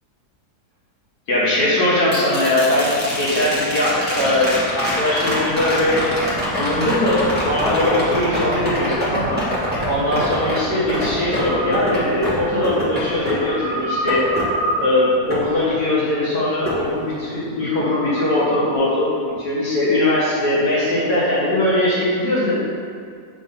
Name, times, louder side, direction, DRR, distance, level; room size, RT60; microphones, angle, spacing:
voice 1, 1.3-6.1 6.6-9.4 9.8-14.3 14.8-22.6, left 1 dB, 75° left, -8 dB, 2.0 m, -20 dB
sound 1, 2.1-16.2 16.6-17.7 19.9-20.0, equal, 10° right, 0.8 m, -26 dB
sound 2, 8.3-18.8, equal, 40° left, 0.7 m, -31 dB
7.1 x 2.7 x 5.5 m, 2.2 s
omnidirectional pair, 1.8 m